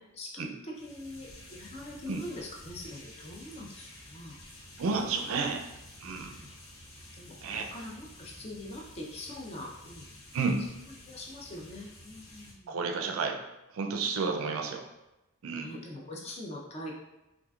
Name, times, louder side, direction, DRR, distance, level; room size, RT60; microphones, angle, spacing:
voice 1, 0.0-4.4 6.2-6.5 7.1-10.1 11.0-12.8 14.3-14.5 15.5-16.9, left 1 dB, 30° left, -2 dB, 0.5 m, -43 dB
sound 1, 0.7-12.5, left 1 dB, 75° left, 0.8 m, -51 dB
voice 2, 4.8-5.7 6.0-6.3 7.4-7.7 10.3-10.6 12.7-13.4 13.7-14.8 15.4-15.7, right 4 dB, 80° right, 4 dB, 0.4 m, -31 dB
3.7 x 2.5 x 2.3 m, 0.97 s
head